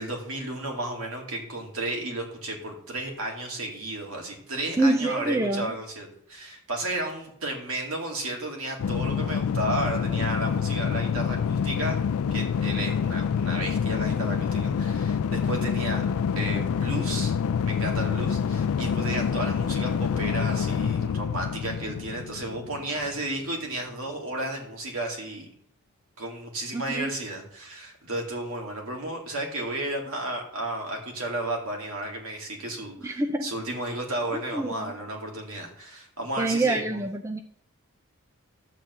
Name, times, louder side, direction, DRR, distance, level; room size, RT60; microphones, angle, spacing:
voice 1, 0.0-12.0 12.3-16.0 16.4-17.4 17.6-25.5 26.2-37.0, right 1 dB, 70° right, 1 dB, 2.5 m, -33 dB
voice 2, 4.8-5.7 26.7-27.1 33.0-33.5 34.3-34.9 36.4-37.4, right 2 dB, 15° right, 6 dB, 0.5 m, -26 dB
sound 1, 8.8-23.2, left 7 dB, 75° left, 0.3 m, -27 dB
12.0 x 4.1 x 8.0 m, 0.67 s
head